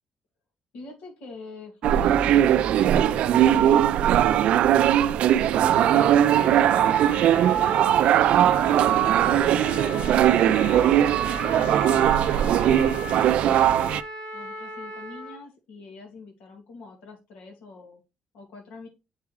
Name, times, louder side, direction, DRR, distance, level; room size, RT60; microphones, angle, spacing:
voice 1, 0.7-4.1 5.3-10.7 11.5-12.0 12.4-14.1 14.3-18.0 18.3-18.9, left 3 dB, 90° left, 2 dB, 2.4 m, -44 dB
sound 1, 1.8-14.0, right 11 dB, 70° right, 0.4 m, -20 dB
Trumpet, 5.9-15.4, left 3 dB, 60° left, 1.7 m, -37 dB
8.0 x 4.8 x 3.1 m, 0.26 s
cardioid pair, 155°, 2 cm